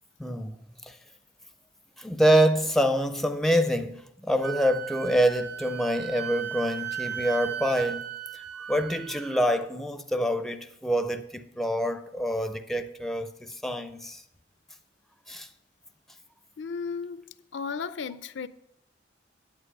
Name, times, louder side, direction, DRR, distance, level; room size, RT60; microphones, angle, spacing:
voice 1, 0.2-0.5 0.9-1.0 2.0-8.1 8.7-14.2 15.3-15.5, equal, ahead, 0.4 m, -26 dB
Wind instrument woodwind instrument, 4.4-9.6, right 9 dB, 60° right, 1.2 m, -36 dB
voice 2, 16.6-17.2 17.5-18.5, left 5 dB, 70° left, 0.4 m, -34 dB
9.5 x 8.5 x 4.7 m
head